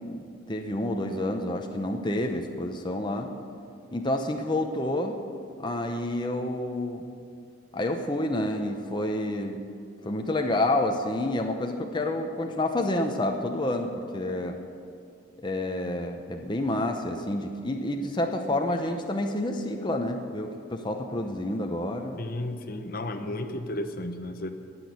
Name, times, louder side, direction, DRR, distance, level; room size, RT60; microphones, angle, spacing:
voice 1, 0.0-3.3 3.9-5.2 5.6-7.0 7.7-9.6 10.0-14.6 15.4-22.2, left 1 dB, 25° left, 3 dB, 0.8 m, -29 dB
voice 2, 22.2-24.5, left 1 dB, 50° left, 7 dB, 1.0 m, -33 dB
18.5 x 6.3 x 9.3 m, 2.4 s
head